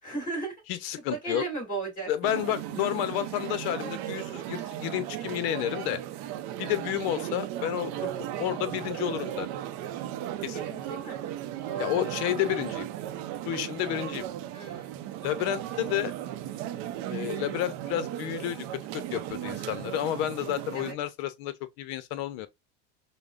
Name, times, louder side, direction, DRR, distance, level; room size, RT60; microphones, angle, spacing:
voice 1, 0.0-0.5 1.1-2.1 10.5-11.2 11.6-11.9 14.5-15.0 20.7-20.9, right 4 dB, 25° left, 2.4 m, -35 dB
voice 2, 0.7-1.4 2.1-6.0 6.6-9.5 10.4-10.6 11.8-12.9 13.5-14.3 15.2-16.1 17.1-18.7 18.9-22.5, left 12 dB, 60° left, 0.7 m, -31 dB
sound 1, 2.2-20.9, right 12 dB, 55° right, 0.6 m, -36 dB
5.1 x 2.1 x 2.4 m
supercardioid pair, 120°, 33 cm